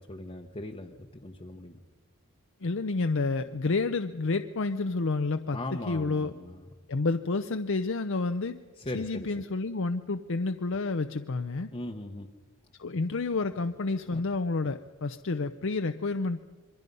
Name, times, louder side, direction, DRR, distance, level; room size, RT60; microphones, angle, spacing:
voice 1, 0.0-1.8 5.5-6.6 8.8-9.3 11.7-12.3 14.1-14.2, left 1 dB, 25° left, 2 dB, 0.9 m, -39 dB
voice 2, 2.6-5.6 5.9-6.3 6.9-8.6 8.9-11.7 12.8-16.4, left 3 dB, 60° left, 8 dB, 0.6 m, -29 dB
27.0 x 23.5 x 5.4 m, 1.4 s
head